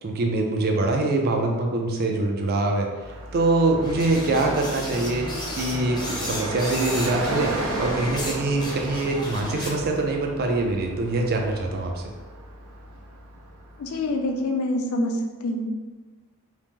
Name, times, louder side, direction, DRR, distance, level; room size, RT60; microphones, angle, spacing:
voice 1, 0.0-2.9 3.3-7.5 7.8-12.0, right 2 dB, 45° right, 2 dB, 0.4 m, -24 dB
Car passing by, 3.0-14.1, right 2 dB, 85° right, 0.7 m, -34 dB
sound 1, 3.8-8.3 8.6-10.0, left 1 dB, 20° left, 0.5 m, -34 dB
voice 2, 13.8-15.7, left 1 dB, 70° left, 4 dB, 0.4 m, -26 dB
2.9 x 2.0 x 3.4 m, 1.3 s
head